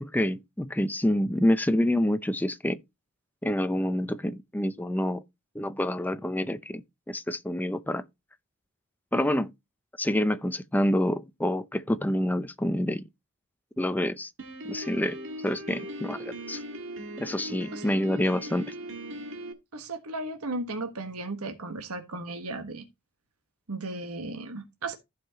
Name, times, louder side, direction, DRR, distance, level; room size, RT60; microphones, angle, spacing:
voice 1, 0.0-2.8 3.4-5.2 5.5-8.0 9.1-9.5 10.0-13.1 13.8-14.3 14.7-15.2 15.4-16.6 17.2-18.7, left 1 dB, 10° left, 0.6 m, -27 dB
Piano, 14.4-19.5, equal, 60° right, 1.6 m, -39 dB
voice 2, 19.7-22.8 23.7-25.0, right 2 dB, 90° right, 1.4 m, -35 dB
14.5 x 5.6 x 2.9 m
head